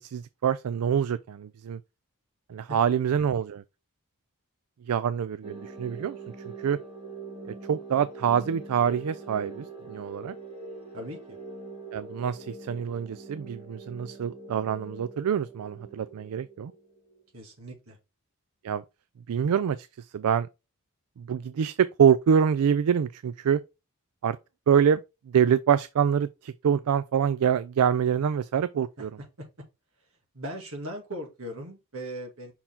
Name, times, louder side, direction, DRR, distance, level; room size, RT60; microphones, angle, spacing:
voice 1, 0.0-1.8 2.5-3.6 4.9-6.2 6.6-6.8 7.7-10.3 11.9-16.7 18.6-18.8 19.3-19.9 20.1-20.5 21.2-23.6 24.2-24.4 24.7-25.0 25.3-29.1, right 8 dB, 85° right, 0.4 m, -25 dB
sound 1, 5.4-17.2, right 3 dB, 25° right, 2.4 m, -43 dB
voice 2, 10.9-11.4 17.3-18.0 29.0-29.5 30.3-32.5, equal, 65° right, 2.3 m, -39 dB
5.7 x 4.5 x 3.6 m
head